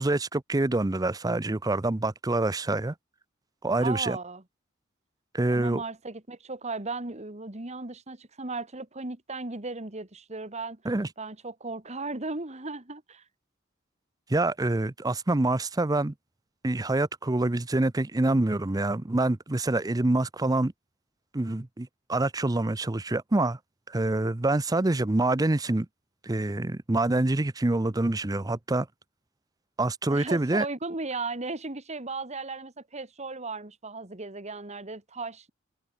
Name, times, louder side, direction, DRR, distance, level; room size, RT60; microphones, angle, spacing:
voice 1, 0.0-2.9 3.6-4.2 5.3-5.8 10.8-11.1 14.3-16.1 16.6-20.7 21.3-23.6 23.9-25.9 26.2-28.9 29.8-30.7, right 2 dB, 20° right, 0.6 m, -26 dB
voice 2, 3.8-4.4 5.5-10.8 11.2-13.2 30.1-35.5, right 3 dB, 35° right, 2.2 m, -36 dB
head